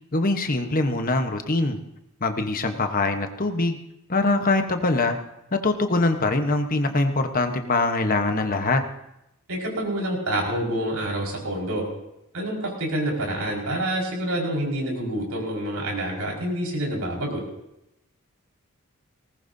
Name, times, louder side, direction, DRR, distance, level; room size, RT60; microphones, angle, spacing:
voice 1, 0.1-1.8 2.2-3.8 4.1-5.2 5.5-8.8, left 2 dB, 40° left, 6 dB, 1.1 m, -23 dB
voice 2, 9.5-11.9 12.3-17.4, right 1 dB, 90° right, -2 dB, 5.2 m, -27 dB
19.5 x 19.0 x 2.7 m, 0.85 s
head